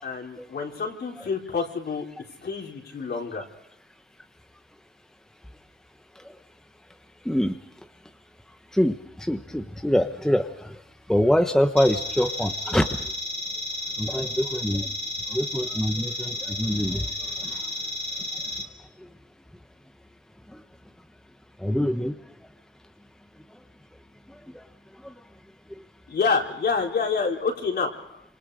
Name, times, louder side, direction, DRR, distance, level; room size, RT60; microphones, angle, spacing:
voice 1, 0.0-2.1 2.4-3.4 26.1-28.2, left 5 dB, 55° left, 1 dB, 4.4 m, -27 dB
voice 2, 8.7-10.7 11.1-12.9 14.0-14.9 15.3-17.0 21.6-22.1 25.0-25.1, equal, 5° left, 6 dB, 1.0 m, -24 dB
sound 1, 11.8-18.6, left 1 dB, 30° left, 3.1 m, -32 dB
29.0 x 27.0 x 5.0 m, 0.79 s
wide cardioid pair, 160°, 20 cm